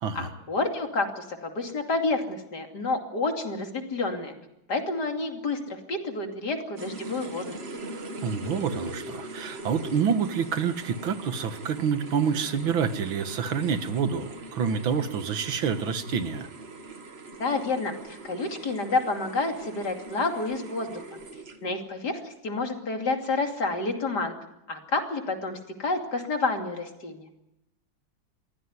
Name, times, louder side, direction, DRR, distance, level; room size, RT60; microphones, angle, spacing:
voice 1, 0.1-4.3 4.7-7.6 17.4-21.2 21.6-24.3 24.7-27.3, left 3 dB, 55° left, 4 dB, 3.2 m, -29 dB
sound 1, 6.8-21.8, right 2 dB, 35° right, 1.6 m, -41 dB
voice 2, 7.9-16.5, right 6 dB, 85° right, 10 dB, 2.2 m, -28 dB
24.0 x 16.0 x 9.6 m, 0.88 s
omnidirectional pair, 2.1 m